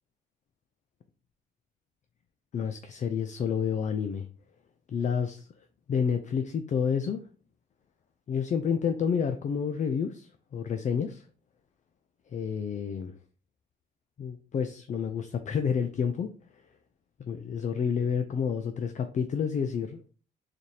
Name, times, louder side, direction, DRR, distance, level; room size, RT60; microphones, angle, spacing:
voice 1, 2.5-4.3 4.9-5.5 5.9-7.2 8.3-11.2 12.3-13.1 14.2-16.3 17.3-20.0, left 6 dB, 40° left, 8 dB, 0.4 m, -29 dB
4.0 x 2.8 x 3.1 m, 0.40 s
cardioid pair, 90°, 20 cm